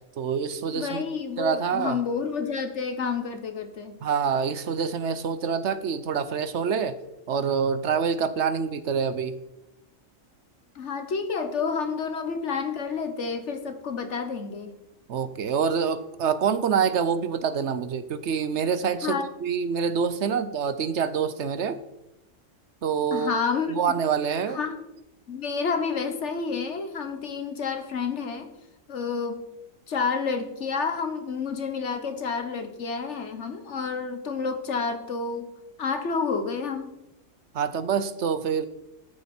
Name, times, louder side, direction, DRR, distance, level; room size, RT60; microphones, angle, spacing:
voice 1, 0.2-1.0 1.4-2.0 4.0-6.9 7.3-9.4 15.1-21.8 22.8-23.4 23.7-24.6 37.5-38.7, right 6 dB, 65° right, 13 dB, 1.0 m, -26 dB
voice 2, 0.7-4.0 10.7-14.8 19.0-19.3 23.1-23.7 24.5-24.8 25.3-28.5 28.9-29.5 29.9-35.5 35.8-36.9, left 5 dB, 65° left, 8 dB, 1.5 m, -29 dB
13.0 x 8.9 x 4.4 m, 0.88 s
omnidirectional pair, 1.3 m